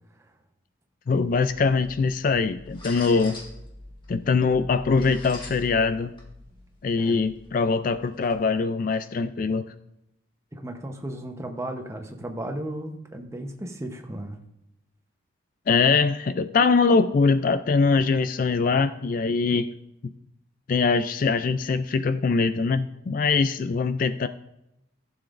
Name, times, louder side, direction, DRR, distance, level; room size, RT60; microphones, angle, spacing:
voice 1, 1.1-3.4 4.1-6.1 6.8-9.6 15.7-19.7 20.7-24.3, left 4 dB, 45° left, 12 dB, 0.3 m, -22 dB
sound 1, 1.1-8.3, left 2 dB, 25° left, 1.5 m, -44 dB
voice 2, 6.9-7.3 10.5-14.4, right 1 dB, 15° right, 4 dB, 0.8 m, -35 dB
15.0 x 7.0 x 2.5 m, 0.84 s
head